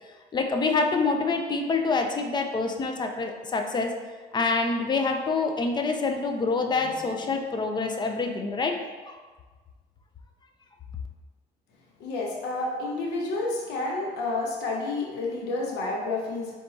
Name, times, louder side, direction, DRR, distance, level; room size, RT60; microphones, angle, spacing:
voice 1, 0.3-3.9 4.3-8.8 9.1-9.2, left 3 dB, 25° left, 4 dB, 0.4 m, -26 dB
voice 2, 12.0-16.5, left 2 dB, 85° left, -1 dB, 0.7 m, -30 dB
4.2 x 3.5 x 2.7 m, 1.4 s
cardioid pair, 110°, 17 cm